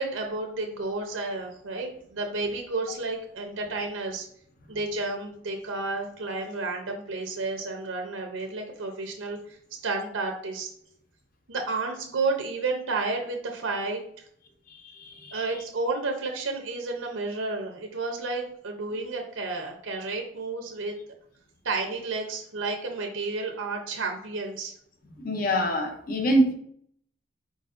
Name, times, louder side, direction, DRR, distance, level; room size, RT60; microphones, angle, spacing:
voice 1, 0.0-4.3 4.7-9.6 9.8-10.7 11.5-14.0 15.3-21.0 21.6-24.7, right 3 dB, 90° right, 3 dB, 0.7 m, -31 dB
voice 2, 14.7-15.4 25.1-26.5, equal, 45° left, 5 dB, 0.7 m, -25 dB
4.7 x 4.0 x 2.5 m, 0.65 s
head